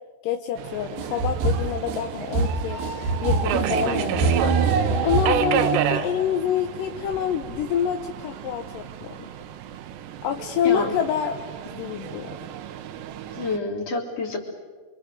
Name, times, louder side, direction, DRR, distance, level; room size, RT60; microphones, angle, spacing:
voice 1, 0.2-2.8 3.2-4.6 5.0-9.3 10.2-11.3 11.7-12.5, left 9 dB, 70° left, 6 dB, 2.2 m, -27 dB
Subway metro underground, 0.6-13.6, right 8 dB, 85° right, 3.3 m, -32 dB
sound 1, 1.0-6.0, right 4 dB, 65° right, 2.7 m, -24 dB
voice 2, 10.6-10.9 13.3-14.4, left 3 dB, 40° left, 0 dB, 4.3 m, -27 dB
30.0 x 24.5 x 6.7 m, 1.4 s
omnidirectional pair, 4.9 m